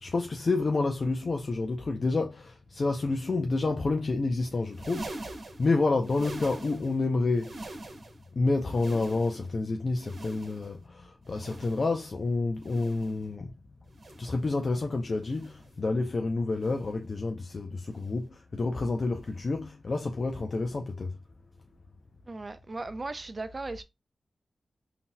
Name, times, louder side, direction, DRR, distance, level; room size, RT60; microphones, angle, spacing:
voice 1, 0.0-5.2 5.6-7.6 8.3-13.5 14.2-21.2, left 3 dB, 55° left, 0.5 m, -29 dB
sound 1, 4.6-7.0 7.3-8.3 8.6-9.6 10.0-10.8 11.3-12.0 12.6-13.2 13.9-14.5 15.2-15.8 16.6-17.0 17.9-18.2 19.2-19.4 20.6-20.7, right 2 dB, 65° right, 1.0 m, -44 dB
voice 2, 22.3-23.8, right 3 dB, 40° right, 0.5 m, -37 dB
3.8 x 2.7 x 2.2 m
cardioid pair, 55°, 0 cm